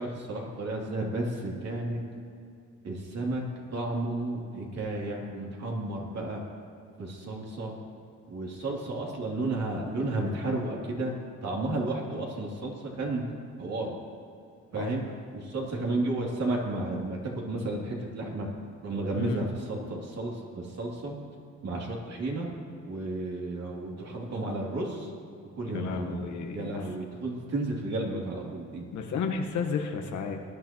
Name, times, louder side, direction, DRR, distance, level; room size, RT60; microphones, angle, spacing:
voice 1, 0.0-2.0 2.8-3.4 3.7-6.4 7.0-7.7 8.3-11.1 11.4-13.2 13.6-14.0 14.7-15.0 15.3-18.5 18.8-21.2 21.6-22.5 22.8-25.1 25.5-26.2 26.5-28.8, right 2 dB, 60° right, -2 dB, 2.9 m, -32 dB
voice 2, 19.1-19.5 25.7-26.9 28.9-30.4, left 5 dB, 75° left, 4 dB, 1.3 m, -32 dB
19.5 x 10.5 x 3.0 m, 2.5 s
cardioid pair, 90°, 30 cm